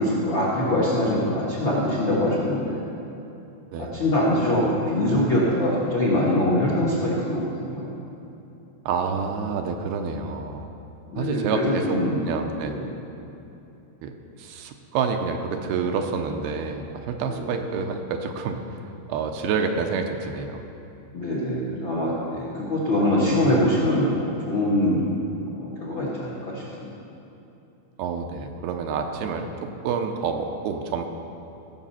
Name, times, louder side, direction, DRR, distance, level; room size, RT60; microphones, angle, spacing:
voice 1, 0.0-2.9 3.8-7.9 11.1-12.2 12.7-12.8 17.4-17.5 21.1-25.0 25.5-26.6, left 1 dB, 60° left, -5 dB, 1.3 m, -23 dB
voice 2, 8.9-10.7 11.2-12.8 14.0-14.1 14.4-18.6 19.1-20.6 28.0-31.0, right 5 dB, 80° right, 4 dB, 2.6 m, -28 dB
18.0 x 7.1 x 5.7 m, 2.9 s
omnidirectional pair, 4.7 m